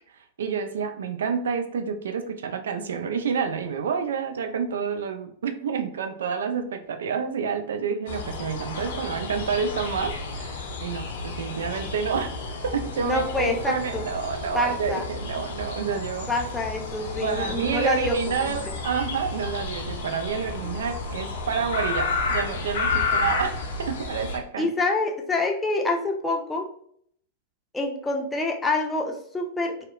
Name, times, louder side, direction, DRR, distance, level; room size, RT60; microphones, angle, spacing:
voice 1, 0.4-12.3 12.6-16.3 17.2-23.5 23.8-24.7, right 6 dB, 75° right, 6 dB, 0.3 m, -29 dB
sound 1, 8.1-24.4, left 4 dB, 70° left, 0.5 m, -31 dB
voice 2, 13.0-14.1 14.5-15.0 16.3-18.7 24.6-26.7 27.7-29.8, left 2 dB, 10° left, 1 dB, 0.5 m, -26 dB
2.7 x 2.0 x 2.4 m, 0.64 s
hypercardioid pair, 100°, 0 cm